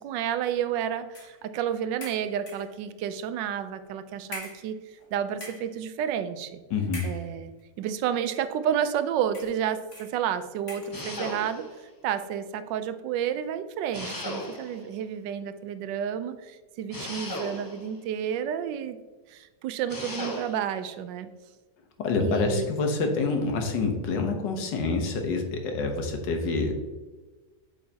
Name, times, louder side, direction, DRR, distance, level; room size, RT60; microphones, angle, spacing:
voice 1, 0.0-4.8 5.1-6.6 7.0-7.5 7.8-11.7 12.0-19.0 19.3-21.3 22.2-22.7 23.1-23.2, right 9 dB, 85° right, 11 dB, 1.3 m, -30 dB
sound 1, 1.1-1.4 2.0-2.8 3.6-3.7 4.3-5.1 5.3-5.8 6.9-7.6 8.4-8.5 9.3-9.6 9.9-10.2 10.7-11.0, left 2 dB, 45° left, 1.6 m, -43 dB
voice 2, 6.7-7.1 22.0-26.7, left 4 dB, 80° left, 4 dB, 1.7 m, -27 dB
sound 2, 10.9-11.8 13.9-14.9 16.9-17.9 19.9-20.7, left 1 dB, 20° left, 0.6 m, -36 dB
8.4 x 5.7 x 2.8 m, 1.3 s
omnidirectional pair, 1.9 m